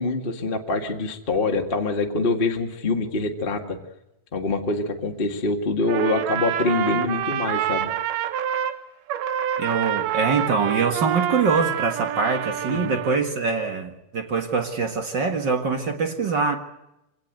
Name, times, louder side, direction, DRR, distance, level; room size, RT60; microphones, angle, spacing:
voice 1, 0.0-3.8 4.3-7.9 12.7-12.9, left 3 dB, 30° left, 3 dB, 1.0 m, -25 dB
Trumpet, 5.8-8.8 9.1-13.2, right 10 dB, 85° right, 3.1 m, -27 dB
voice 2, 9.6-16.6, right 4 dB, 45° right, 6 dB, 1.5 m, -24 dB
25.5 x 18.0 x 8.0 m, 0.92 s
omnidirectional pair, 4.3 m